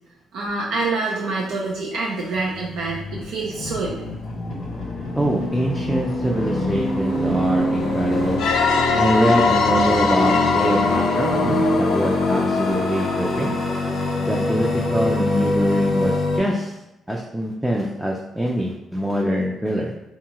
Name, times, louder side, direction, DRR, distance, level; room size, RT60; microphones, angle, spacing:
voice 1, 0.3-4.1, right 3 dB, 85° right, -4 dB, 0.4 m, -26 dB
sound 1, 2.4-16.4, left 1 dB, 60° left, 0.8 m, -24 dB
voice 2, 5.2-8.4 8.9-13.5 14.2-16.8 17.1-19.9, equal, 5° right, -2 dB, 0.4 m, -24 dB
sound 2, 8.4-13.0, left 5 dB, 80° left, 0.4 m, -22 dB
2.8 x 2.3 x 2.8 m, 0.94 s
cardioid pair, 90°, 0 cm